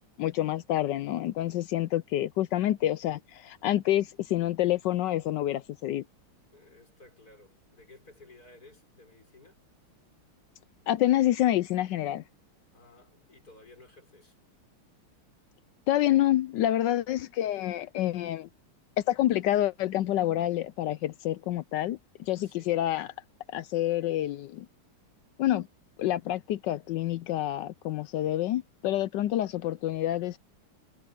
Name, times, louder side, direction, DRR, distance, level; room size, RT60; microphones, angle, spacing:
voice 1, 0.0-6.0 10.9-12.2 15.9-18.5 19.0-23.1 23.5-24.7 25.4-25.7 26.0-30.4, left 13 dB, 75° left, 1.0 m, -28 dB
voice 2, 6.5-9.6 12.7-14.4 16.1-16.3 22.3-22.7, left 2 dB, 40° left, 6.1 m, -55 dB
omnidirectional pair, 2.4 m